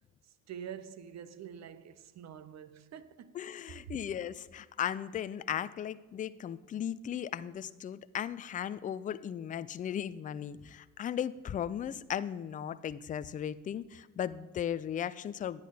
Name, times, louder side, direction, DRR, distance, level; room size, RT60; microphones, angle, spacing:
voice 1, 0.5-3.4, right 8 dB, 45° right, 0.7 m, -46 dB
voice 2, 3.3-15.6, left 9 dB, 20° left, 0.3 m, -36 dB
10.0 x 9.7 x 3.9 m
hypercardioid pair, 70°, 39 cm